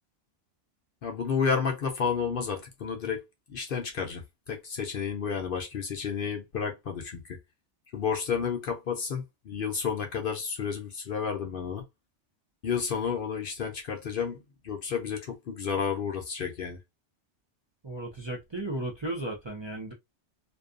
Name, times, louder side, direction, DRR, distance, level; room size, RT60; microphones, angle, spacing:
voice 1, 1.0-3.2 3.5-7.4 7.9-11.8 12.6-14.4 14.6-16.8, left 6 dB, 60° left, 0.7 m, -31 dB
voice 2, 17.8-19.9, right 2 dB, 30° right, 0.5 m, -35 dB
2.6 x 2.3 x 2.4 m
omnidirectional pair, 1.2 m